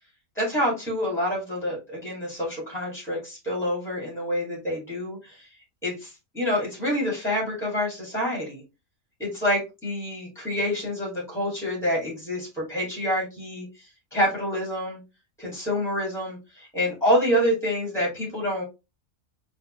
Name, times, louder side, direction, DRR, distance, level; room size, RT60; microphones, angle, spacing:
voice 1, 0.4-5.5 5.8-8.6 9.2-13.9 14.1-15.0 15.4-18.6, equal, ahead, -4 dB, 2.4 m, -27 dB
4.4 x 3.9 x 3.1 m, 0.26 s
omnidirectional pair, 1.4 m